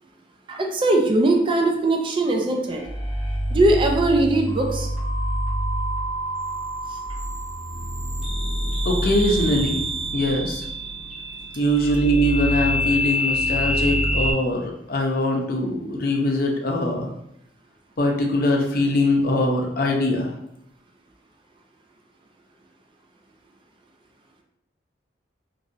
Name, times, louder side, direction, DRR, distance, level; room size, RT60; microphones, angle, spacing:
voice 1, 0.5-2.8 3.5-4.9, right 2 dB, 30° right, 2 dB, 0.4 m, -20 dB
sound 1, 2.7-14.3, equal, ahead, 1.2 m, -26 dB
voice 2, 8.8-9.8 10.1-10.6 11.6-17.1 18.0-20.3, left 1 dB, 55° left, 1 dB, 0.6 m, -22 dB
3.0 x 2.7 x 2.6 m, 0.78 s
head